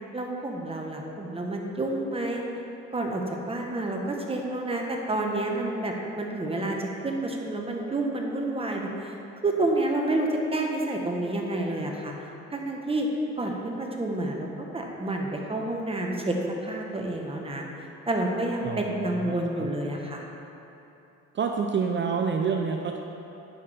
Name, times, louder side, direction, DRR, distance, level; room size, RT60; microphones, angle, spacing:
voice 1, 0.1-2.4 2.9-9.2 9.4-13.1 13.4-20.3, right 2 dB, 20° right, 0 dB, 1.1 m, -29 dB
voice 2, 18.6-19.7 21.3-23.0, right 5 dB, 40° right, 3 dB, 0.5 m, -28 dB
10.0 x 5.9 x 3.4 m, 2.9 s
cardioid pair, 90°, 30 cm